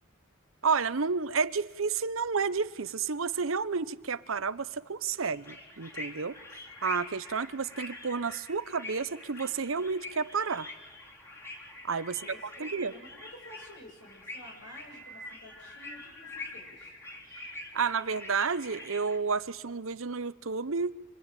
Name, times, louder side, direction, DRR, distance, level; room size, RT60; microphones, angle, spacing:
voice 1, 0.6-6.4 6.8-10.7 11.8-12.9 17.7-21.0, right 5 dB, 85° right, 0.9 m, -31 dB
sound 1, 5.2-19.2, left 2 dB, 15° left, 3.6 m, -45 dB
voice 2, 12.1-16.9, left 1 dB, 65° left, 7.4 m, -51 dB
27.5 x 22.5 x 9.1 m
head